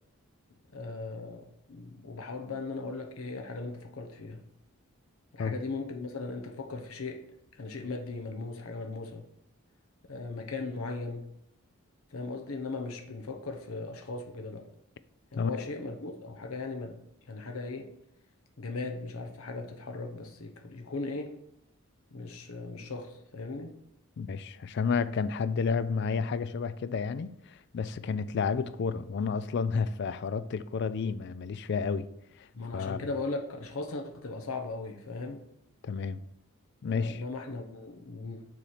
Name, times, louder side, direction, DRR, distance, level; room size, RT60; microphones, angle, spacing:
voice 1, 0.7-4.4 5.3-7.2 7.5-9.2 10.0-11.3 12.1-14.7 15.3-17.0 17.3-17.9 18.6-21.4 22.1-23.7 32.5-35.4 36.9-38.5, left 3 dB, 80° left, 0.7 m, -38 dB
voice 2, 15.4-15.7 24.2-32.1 32.4-32.5 32.7-33.1 35.8-36.2 36.8-37.2, left 5 dB, 55° left, 0.3 m, -31 dB
6.9 x 3.1 x 5.6 m
head